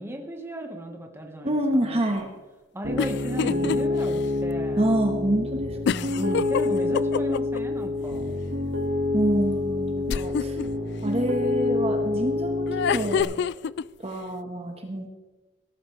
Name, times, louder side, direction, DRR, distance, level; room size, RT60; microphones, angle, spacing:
voice 1, 0.0-2.3 2.7-4.9 6.1-8.4, equal, 15° right, 2 dB, 1.6 m, -35 dB
voice 2, 1.4-2.3 4.8-6.2 9.1-10.6 11.0-13.4 14.0-15.1, right 1 dB, 30° right, 3 dB, 1.5 m, -27 dB
Piano, 2.8-13.2, left 2 dB, 85° right, 2.2 m, -27 dB
sound 1, 3.0-3.8 4.2-4.3 5.9-7.6 10.1-10.7 12.7-13.8, left 7 dB, 60° left, 0.3 m, -26 dB
17.0 x 14.0 x 3.4 m, 1.2 s
head